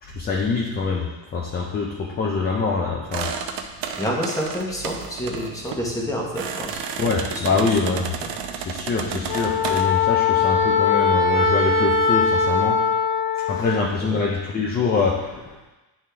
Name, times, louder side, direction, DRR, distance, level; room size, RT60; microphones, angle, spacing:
voice 1, 0.0-3.3 7.0-8.1 8.5-12.8 13.5-15.6, left 4 dB, 25° left, -1 dB, 0.4 m, -24 dB
sound 1, 3.1-9.8, right 7 dB, 85° right, 0.8 m, -32 dB
voice 2, 4.0-6.8 7.3-8.3 9.0-9.3 13.4-13.7 14.0-14.2, equal, 10° left, -2 dB, 0.9 m, -29 dB
Wind instrument woodwind instrument, 9.3-13.7, left 5 dB, 80° left, 1.5 m, -20 dB
9.8 x 3.4 x 3.3 m, 1.1 s
cardioid pair, 170°, 41 cm